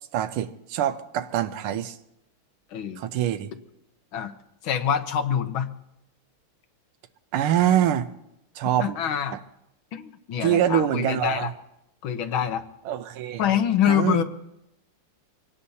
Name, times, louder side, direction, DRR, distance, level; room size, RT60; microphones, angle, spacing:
voice 1, 0.1-2.0 3.0-3.5 7.3-8.1 8.5-8.9 9.3-9.4 10.4-11.5 12.8-13.4 13.9-14.2, right 10 dB, 80° right, 1.7 m, -24 dB
voice 2, 2.7-3.0 4.1-4.3 4.6-5.7 8.8-9.4 9.9-11.5 12.0-12.6 13.4-14.2, left 9 dB, 70° left, 1.7 m, -25 dB
24.5 x 18.5 x 2.8 m
omnidirectional pair, 2.4 m